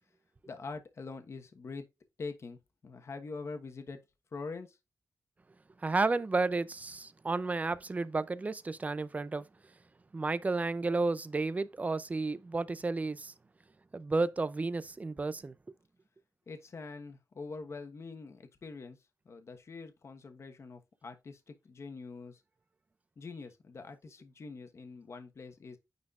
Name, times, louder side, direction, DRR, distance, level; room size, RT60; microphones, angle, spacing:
voice 1, 0.5-1.9 2.2-2.6 2.8-4.0 4.3-4.8 16.5-19.0 19.2-22.4 23.2-25.8, left 4 dB, 50° left, 1.2 m, -44 dB
voice 2, 5.8-9.5 10.1-13.3 13.9-15.5, right 3 dB, 25° right, 0.5 m, -32 dB
9.5 x 4.1 x 2.4 m
wide cardioid pair, 175°, 6 cm